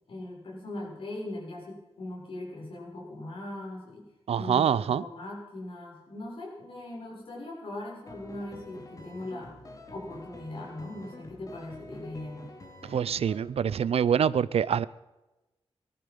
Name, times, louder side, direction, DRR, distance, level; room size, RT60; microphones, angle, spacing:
voice 1, 0.1-4.1 4.4-9.5 9.9-12.4, left 1 dB, 65° left, -3 dB, 6.8 m, -40 dB
voice 2, 4.3-5.0 12.9-14.9, right 8 dB, 80° right, 19 dB, 0.6 m, -25 dB
sound 1, 8.1-13.4, left 2 dB, 35° left, 2.6 m, -47 dB
19.0 x 14.0 x 5.5 m, 1.0 s
wide cardioid pair, 175°, 10 cm